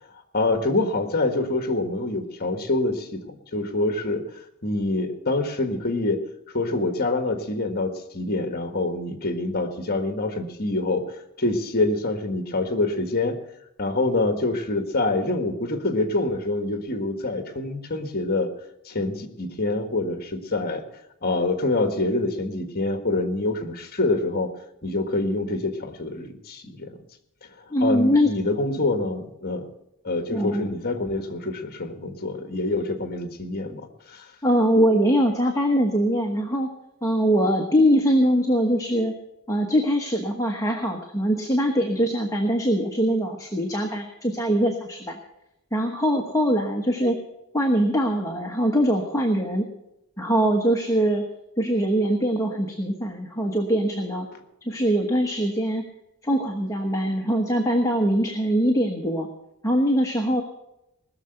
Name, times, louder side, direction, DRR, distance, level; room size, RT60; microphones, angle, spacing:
voice 1, 0.3-6.2 6.5-11.0 11.4-13.4 13.8-18.5 18.8-20.8 21.2-24.5 24.8-26.9 27.8-29.7 30.0-34.3, left 2 dB, 45° left, 7 dB, 1.5 m, -26 dB
voice 2, 27.7-28.3 28.7-28.8 30.3-30.7 34.4-36.7 37.0-39.2 39.5-45.2 45.7-47.2 47.5-49.7 50.2-51.2 51.6-54.3 54.7-55.8 56.2-59.3 59.6-60.4, equal, 15° left, 2 dB, 1.2 m, -22 dB
19.5 x 7.0 x 7.8 m, 0.87 s
head